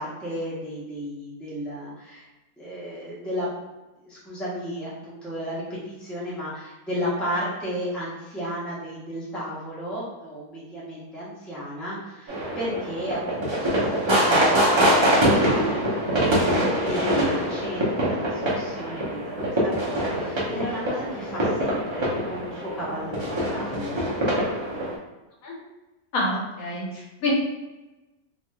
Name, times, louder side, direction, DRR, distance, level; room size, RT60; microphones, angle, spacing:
voice 1, 0.0-2.2 2.6-3.5 4.0-24.0, equal, ahead, -9 dB, 0.8 m, -34 dB
sound 1, 12.3-24.9, equal, 35° right, 0.4 m, -24 dB
voice 2, 26.1-27.3, left 2 dB, 70° left, -3 dB, 1.2 m, -27 dB
3.0 x 2.9 x 2.2 m, 1.1 s
omnidirectional pair, 1.5 m